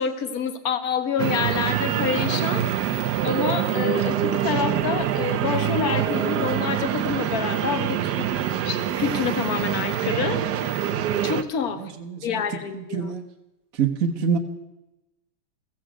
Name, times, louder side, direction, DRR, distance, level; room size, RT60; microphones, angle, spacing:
voice 1, 0.0-2.7 3.2-10.4 11.2-11.8 12.2-13.1, left 7 dB, 50° left, 10 dB, 1.6 m, -27 dB
sound 1, 1.2-11.4, right 10 dB, 60° right, 1.2 m, -25 dB
voice 2, 11.8-12.4 12.7-13.2 13.8-14.4, right 6 dB, 45° right, 4 dB, 1.5 m, -26 dB
15.5 x 15.0 x 6.2 m, 0.94 s
omnidirectional pair, 2.3 m